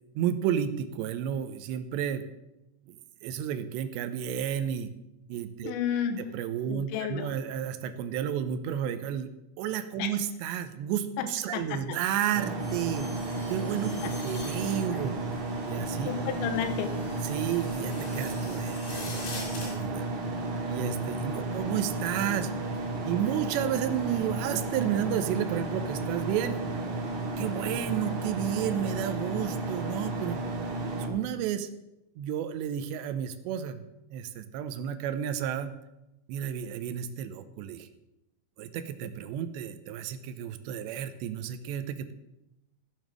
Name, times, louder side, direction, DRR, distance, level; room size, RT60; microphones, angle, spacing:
voice 1, 0.2-2.2 2.9-3.0 3.2-4.9 5.3-5.7 6.2-9.3 9.6-13.1 13.5-15.1 15.6-16.2 17.2-20.0 20.7-22.5 23.0-26.6 27.4-30.4 30.9-31.7 32.2-33.8 34.1-35.7 36.3-37.9 38.6-42.1, right 10 dB, 80° right, 11 dB, 2.8 m, -32 dB
voice 2, 5.6-6.2 6.7-7.3 10.0-10.1 11.2-11.3 11.5-12.0 16.1-17.0 21.4-21.5, left 9 dB, 85° left, 5 dB, 3.2 m, -32 dB
sound 1, 12.3-31.1, right 2 dB, 55° right, 2.9 m, -33 dB
sound 2, 12.6-19.7, left 2 dB, 65° left, 6.2 m, -45 dB
14.0 x 7.0 x 6.2 m, 0.91 s
omnidirectional pair, 5.3 m